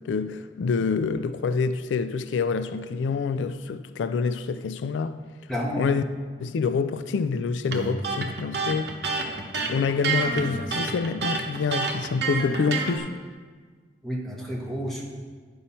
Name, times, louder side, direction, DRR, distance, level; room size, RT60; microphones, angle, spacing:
voice 1, 0.0-5.2 5.8-6.0 6.4-8.9 9.6-13.1, left 5 dB, 90° left, 0.4 m, -27 dB
voice 2, 5.5-5.9 9.6-9.7 14.0-15.0, equal, ahead, 1.3 m, -30 dB
Electric guitar, 7.7-13.0, right 4 dB, 70° right, 0.9 m, -28 dB
10.0 x 5.5 x 4.2 m
head